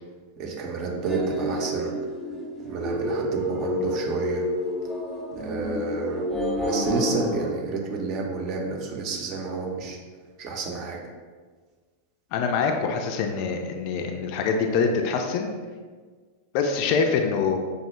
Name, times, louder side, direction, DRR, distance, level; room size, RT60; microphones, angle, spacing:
voice 1, 0.4-2.0 2.6-4.4 5.4-6.3 6.6-10.0 10.4-11.0, right 4 dB, 40° right, 0 dB, 0.6 m, -30 dB
sound 1, 0.9-7.5, equal, ahead, 0.7 m, -29 dB
voice 2, 12.3-15.5 16.5-17.6, left 5 dB, 45° left, 4 dB, 0.4 m, -24 dB
5.2 x 2.0 x 3.0 m, 1.5 s
figure-of-eight pair, 90°, 0 cm